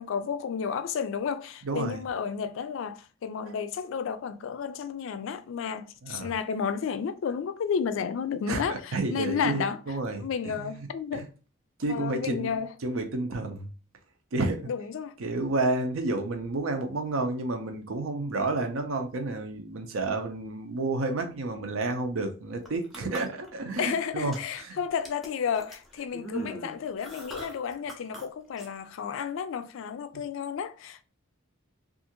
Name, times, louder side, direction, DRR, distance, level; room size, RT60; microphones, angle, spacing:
voice 1, 0.0-9.8 10.2-11.3 11.9-12.7 14.7-15.1 23.8-31.0, left 6 dB, 65° left, 0.3 m, -32 dB
voice 2, 1.6-2.0 6.0-6.3 8.5-11.2 11.8-13.7 14.3-14.7 15.2-24.8, right 2 dB, 80° right, 0.6 m, -31 dB
sound 1, 22.6-23.9 24.2-24.6 25.0-28.2 28.6-28.7, right 1 dB, ahead, 0.5 m, -40 dB
2.6 x 2.4 x 2.8 m
head